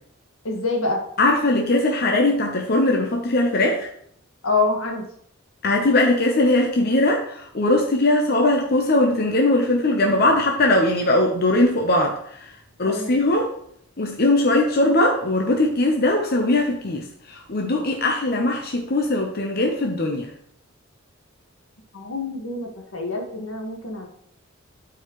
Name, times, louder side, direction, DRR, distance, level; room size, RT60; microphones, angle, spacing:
voice 1, 0.4-1.0 4.4-5.1 12.9-13.2 21.9-24.1, left 3 dB, 85° left, 0 dB, 1.7 m, -26 dB
voice 2, 1.2-3.9 5.6-12.5 12.8-13.5 14.0-20.3, left 2 dB, 50° left, 1 dB, 0.9 m, -20 dB
13.0 x 4.8 x 3.1 m, 0.67 s
head